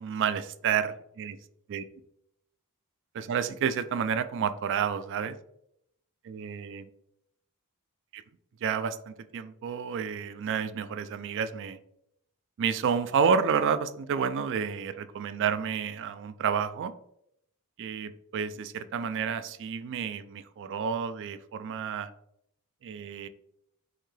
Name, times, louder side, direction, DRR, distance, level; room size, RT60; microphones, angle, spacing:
voice 1, 0.0-1.4 1.7-1.8 3.1-5.4 6.2-6.9 8.1-8.2 8.6-11.8 12.6-16.9 17.8-22.1 22.8-23.3, right 7 dB, 55° right, 13 dB, 0.3 m, -30 dB
5.7 x 2.7 x 3.2 m, 0.75 s
head